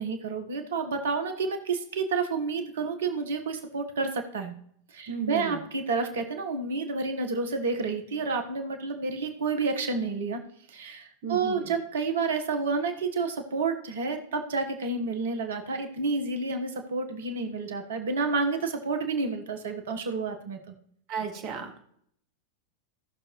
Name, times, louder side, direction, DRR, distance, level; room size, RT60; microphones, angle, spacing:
voice 1, 0.0-4.5 4.9-10.4 10.7-20.7, right 4 dB, 60° right, 6 dB, 1.4 m, -30 dB
voice 2, 5.1-5.6 11.2-11.7 21.1-21.8, right 7 dB, 40° right, 4 dB, 1.9 m, -34 dB
17.5 x 6.4 x 3.2 m, 0.67 s
figure-of-eight pair, 90°, 0 cm